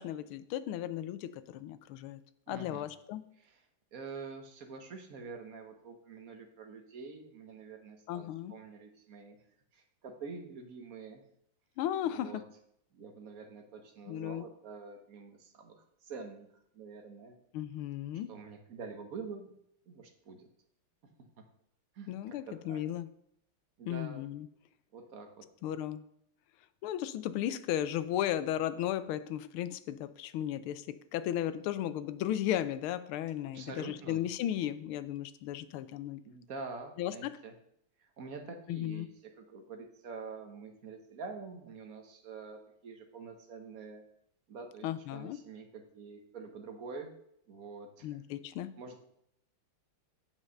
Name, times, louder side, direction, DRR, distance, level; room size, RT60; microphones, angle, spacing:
voice 1, 0.0-2.2 2.5-3.2 8.1-8.5 11.8-12.4 14.1-14.4 17.5-18.3 22.1-23.1 23.9-24.5 25.6-26.0 26.8-36.2 37.0-37.1 38.7-39.1 44.8-45.4 48.0-48.7, left 11 dB, 85° left, 14 dB, 1.5 m, -35 dB
voice 2, 2.5-2.9 3.4-3.6 3.9-9.4 9.7-11.2 12.0-12.4 12.9-16.5 16.7-17.4 18.3-19.5 19.9-20.5 21.0-21.5 21.9-22.8 23.8-24.2 24.9-25.3 33.5-34.2 36.2-37.5 38.0-39.1 39.4-44.0 44.5-47.1 47.5-48.2 48.8-49.0, right 4 dB, 50° right, 5 dB, 1.4 m, -46 dB
8.0 x 5.6 x 6.4 m, 0.73 s
omnidirectional pair, 2.3 m